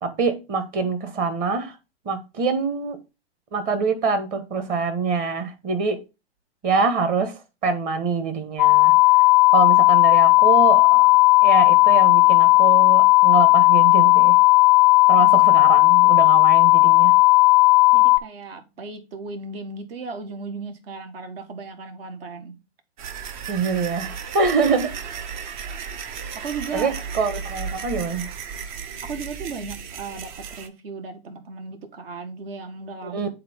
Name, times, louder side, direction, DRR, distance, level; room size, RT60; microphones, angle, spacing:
voice 1, 0.0-1.8 2.0-3.0 3.5-6.0 6.6-7.3 7.6-8.9 9.5-11.0 11.4-14.4 15.1-17.1 23.5-24.9 26.7-28.3 33.0-33.3, right 4 dB, 25° right, 1.4 m, -24 dB
sound 1, 8.6-18.2, left 25 dB, 25° left, 0.4 m, -14 dB
voice 2, 17.9-22.6 26.3-27.0 29.0-33.3, right 4 dB, 60° right, 1.5 m, -36 dB
sound 2, 23.0-30.7, right 6 dB, 45° right, 0.9 m, -34 dB
8.6 x 3.9 x 3.6 m
hypercardioid pair, 130°, 33 cm